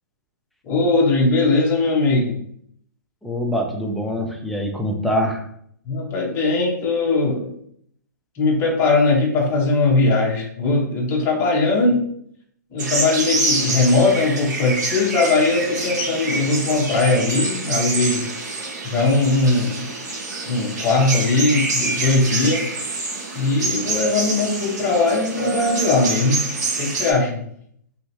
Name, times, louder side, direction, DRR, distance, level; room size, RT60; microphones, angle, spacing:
voice 1, 0.6-2.4 5.9-7.5 8.4-12.1 12.7-18.3 18.8-19.9 20.4-22.7 23.3-26.4 26.8-27.4, left 3 dB, 20° left, -1 dB, 0.8 m, -19 dB
voice 2, 3.2-5.5, equal, ahead, 1 dB, 0.4 m, -24 dB
sound 1, 12.8-27.1, right 3 dB, 60° right, 1.4 m, -26 dB
3.2 x 2.8 x 2.7 m, 0.66 s
hypercardioid pair, 145°, 10 cm